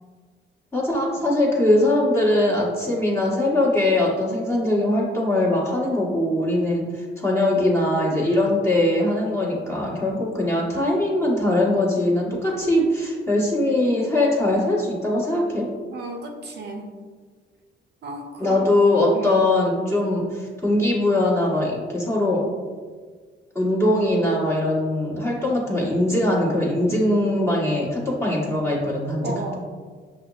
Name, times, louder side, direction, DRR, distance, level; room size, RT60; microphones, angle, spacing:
voice 1, 0.7-15.7 18.4-22.4 23.5-29.3, left 1 dB, 15° left, -5 dB, 1.1 m, -21 dB
voice 2, 15.9-16.9 18.0-18.7 19.1-19.4 29.2-29.6, right 2 dB, 55° right, 1 dB, 0.5 m, -33 dB
5.9 x 2.0 x 2.3 m, 1.5 s
cardioid pair, 90°, 20 cm